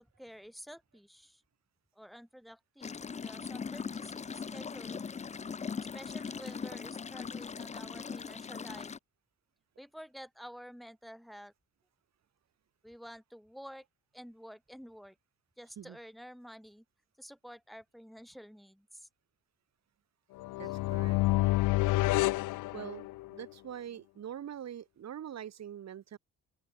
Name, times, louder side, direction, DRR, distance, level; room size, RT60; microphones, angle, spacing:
voice 1, 0.0-1.4 1.9-5.0 5.8-8.9 9.8-11.5 12.8-13.8 14.1-15.2 15.6-16.8 17.2-19.1 20.6-20.7, equal, ahead, 6.5 m, -50 dB
sound 1, 2.8-9.0, left 6 dB, 25° left, 0.5 m, -40 dB
sound 2, 20.4-23.4, left 19 dB, 90° left, 0.7 m, -29 dB
voice 2, 20.6-21.2 22.7-26.2, right 10 dB, 60° right, 3.6 m, -44 dB
open air
cardioid pair, 90°, 30 cm